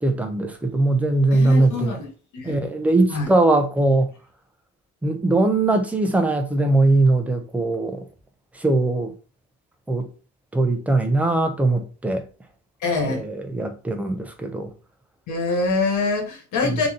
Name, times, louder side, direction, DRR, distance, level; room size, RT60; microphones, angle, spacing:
voice 1, 0.0-2.0 2.4-4.1 5.0-8.1 8.5-9.1 9.9-10.1 10.5-12.3 13.0-14.7 16.6-16.8, right 2 dB, 5° right, 0.5 m, -20 dB
voice 2, 1.3-2.1 2.3-2.7 3.1-3.3 12.8-13.2 15.3-16.9, left 3 dB, 75° left, 1.7 m, -24 dB
3.9 x 2.8 x 3.7 m
cardioid pair, 160°, 30 cm